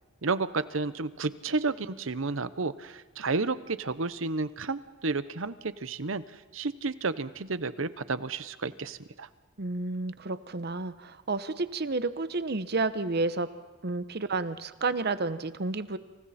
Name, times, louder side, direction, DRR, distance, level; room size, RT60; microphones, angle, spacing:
voice 1, 0.2-9.3, right 3 dB, 90° right, 14 dB, 1.0 m, -31 dB
voice 2, 9.6-13.5 13.8-16.0, right 3 dB, 55° right, 12 dB, 0.9 m, -31 dB
30.0 x 27.5 x 4.3 m, 1.2 s
head